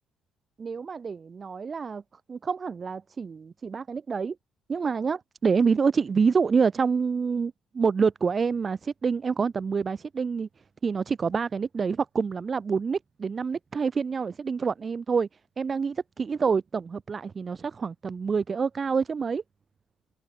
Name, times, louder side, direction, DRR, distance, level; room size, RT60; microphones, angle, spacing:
voice 1, 0.6-2.0 2.3-4.4 4.7-10.5 10.8-15.3 15.6-19.4, right 5 dB, 40° right, 1.7 m, -27 dB
open air
supercardioid pair, 70°, 0 cm